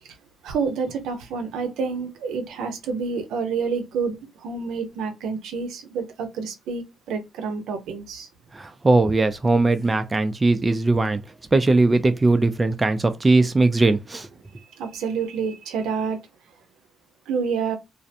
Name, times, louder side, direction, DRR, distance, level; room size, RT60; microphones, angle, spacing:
voice 1, 0.4-4.2 4.4-8.3 14.8-16.2 17.3-17.8, right 5 dB, 85° right, 0.6 m, -28 dB
voice 2, 8.5-11.2 11.5-14.3, right 2 dB, 20° right, 0.3 m, -19 dB
2.4 x 2.1 x 2.7 m
cardioid pair, 90°, 0 cm